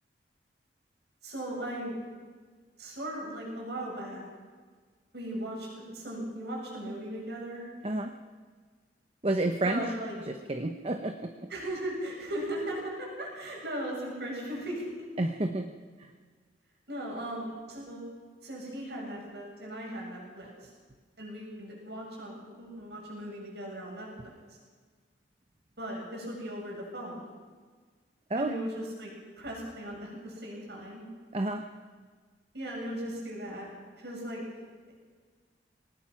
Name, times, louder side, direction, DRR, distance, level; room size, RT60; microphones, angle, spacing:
voice 1, 1.2-2.0 2.8-4.2 5.1-7.7 9.6-10.2 11.5-15.1 16.9-18.1 18.4-20.7 21.2-24.4 25.8-27.3 28.4-31.0 32.5-33.7 34.0-34.4, right 1 dB, 70° right, -2 dB, 7.8 m, -38 dB
voice 2, 9.2-9.8 10.3-11.3 15.2-15.7 28.3-28.5 31.3-31.7, right 2 dB, 35° right, 6 dB, 1.0 m, -30 dB
24.0 x 19.5 x 5.9 m, 1.5 s
head